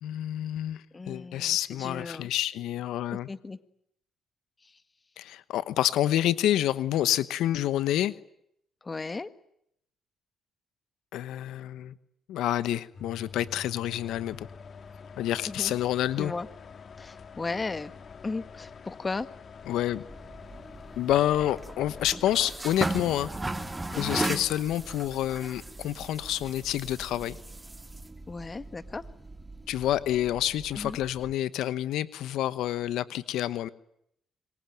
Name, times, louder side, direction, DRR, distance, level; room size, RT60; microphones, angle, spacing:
voice 1, 0.0-3.3 5.2-8.1 11.1-11.9 12.3-14.5 15.2-16.3 19.7-20.0 21.0-23.3 24.0-27.4 29.7-33.7, left 12 dB, 85° left, 15 dB, 1.1 m, -28 dB
voice 2, 0.9-2.3 3.3-3.6 8.8-9.3 15.5-15.8 16.2-16.5 17.0-17.9 18.2-19.3 23.9-24.2 28.3-29.1 30.7-31.0, left 3 dB, 25° left, 13 dB, 1.6 m, -35 dB
sound 1, 12.9-22.2, left 5 dB, 50° left, 1.8 m, -46 dB
sound 2, 20.1-31.3, right 2 dB, 15° right, 2.8 m, -37 dB
26.5 x 23.5 x 9.2 m, 0.74 s
cardioid pair, 90°, 0 cm